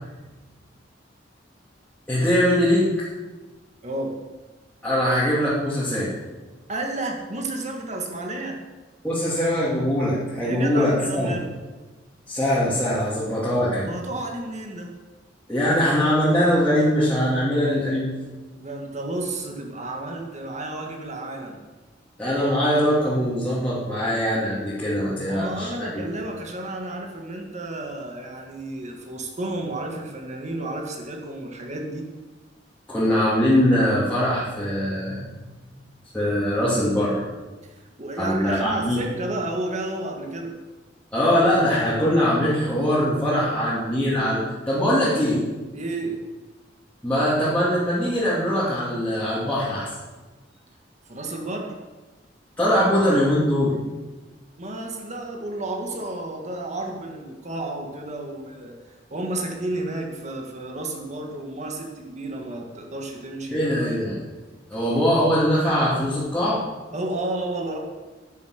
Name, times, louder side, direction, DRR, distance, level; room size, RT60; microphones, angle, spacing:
voice 1, 2.1-3.1 4.8-6.1 9.0-11.3 12.3-13.9 15.5-18.1 22.2-26.1 32.9-35.2 36.1-37.2 38.2-39.0 41.1-45.4 47.0-49.9 52.6-53.7 63.5-64.1 64.7-66.6, equal, 10° left, -10 dB, 3.0 m, -22 dB
voice 2, 3.8-4.2 6.7-8.6 10.4-11.6 13.9-14.9 18.5-21.6 25.3-32.1 37.6-40.6 45.7-46.2 51.1-51.8 54.6-58.8 59.1-63.9 64.7-64.8 66.9-67.8, right 2 dB, 40° right, 2 dB, 1.9 m, -32 dB
10.5 x 10.0 x 6.6 m, 1.2 s
head